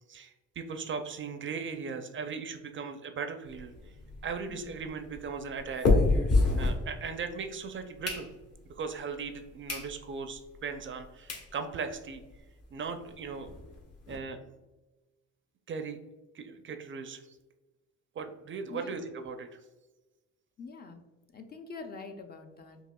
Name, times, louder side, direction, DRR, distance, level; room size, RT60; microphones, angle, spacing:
voice 1, 0.1-3.9 4.2-5.9 6.6-8.3 8.6-12.2 12.7-13.5 14.1-14.4 15.7-16.0 16.3-17.4 18.1-19.6, right 5 dB, 40° right, 7 dB, 0.4 m, -38 dB
sound 1, 3.5-7.4 7.8-8.7 9.2-9.3 9.7-9.9 10.3-10.4 11.0-11.1 11.3-11.5 11.9-12.0 12.2-12.3 12.6-12.7 13.0-14.2, left 3 dB, 55° left, 1.1 m, -29 dB
voice 2, 20.6-21.0 21.3-22.8, left 4 dB, 30° left, 6 dB, 0.4 m, -44 dB
4.8 x 2.8 x 2.2 m, 1.1 s
cardioid pair, 90°, 30 cm